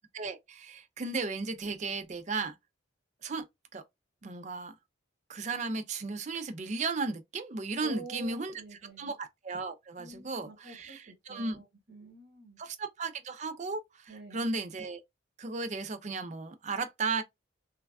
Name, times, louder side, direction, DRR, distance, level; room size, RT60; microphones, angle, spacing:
voice 1, 0.1-2.5 3.2-3.4 3.7-3.8 4.2-4.7 5.3-8.5 9.0-11.6 12.6-15.0 15.4-17.2, right 3 dB, 35° right, 0.4 m, -35 dB
voice 2, 7.8-9.1 10.0-12.6 14.1-14.5, right 2 dB, 55° right, 1.0 m, -48 dB
3.2 x 2.3 x 2.3 m
head